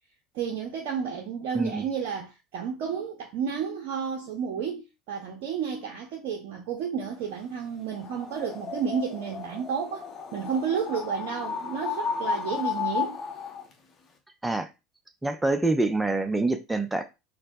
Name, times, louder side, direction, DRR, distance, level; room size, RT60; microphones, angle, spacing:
voice 1, 0.3-13.2, right 7 dB, 60° right, 0.5 m, -31 dB
voice 2, 1.5-1.8 14.4-14.7 15.2-17.0, right 2 dB, 10° right, 0.5 m, -26 dB
sound 1, 7.9-13.7, left 6 dB, 35° left, 0.7 m, -33 dB
4.1 x 2.1 x 2.6 m
figure-of-eight pair, 70°, 0 cm